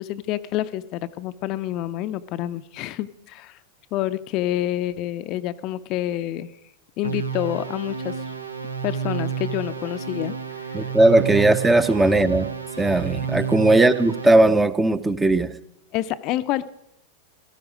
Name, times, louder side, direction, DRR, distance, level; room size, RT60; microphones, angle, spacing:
voice 1, 0.0-3.6 3.9-6.5 7.0-8.2 8.8-10.3 10.6-10.9 15.9-16.7, left 14 dB, 40° left, 12 dB, 0.6 m, -28 dB
sound 1, 7.0-14.6, right 6 dB, 80° right, 1.3 m, -30 dB
voice 2, 10.7-12.5 12.8-15.5, right 2 dB, 10° right, 13 dB, 0.7 m, -18 dB
17.5 x 14.0 x 5.1 m, 0.77 s
figure-of-eight pair, 90°, 0 cm